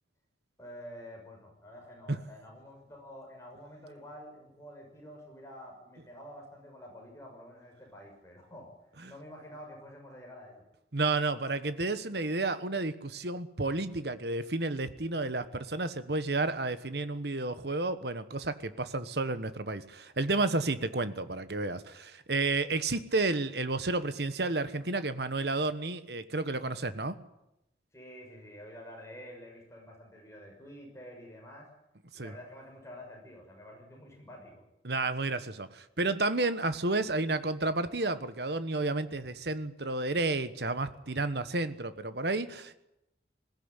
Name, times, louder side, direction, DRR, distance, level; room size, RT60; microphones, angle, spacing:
voice 1, 0.6-8.7 9.0-10.6 26.6-26.9 27.9-31.7 32.1-34.6, equal, 15° left, 0 dB, 6.1 m, -49 dB
voice 2, 10.9-27.2 32.1-32.3 34.8-42.8, right 2 dB, 65° right, 12 dB, 1.3 m, -31 dB
21.0 x 16.0 x 9.9 m, 0.88 s
head